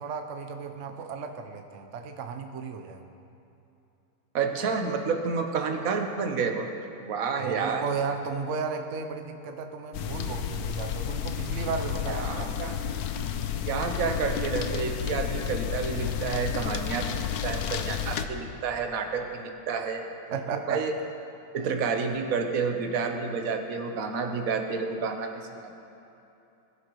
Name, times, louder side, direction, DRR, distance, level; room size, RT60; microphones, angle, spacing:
voice 1, 0.0-3.0 7.4-12.5 20.3-20.9, right 5 dB, 70° right, 5 dB, 0.7 m, -34 dB
voice 2, 4.3-6.7 7.0-7.8 12.1-12.8 13.7-20.1 20.7-20.9 21.5-25.8, right 5 dB, 50° right, 4 dB, 1.2 m, -30 dB
sound 1, 9.9-18.3, left 9 dB, 75° left, 0.8 m, -31 dB
21.5 x 11.5 x 3.1 m, 2.9 s
omnidirectional pair, 2.3 m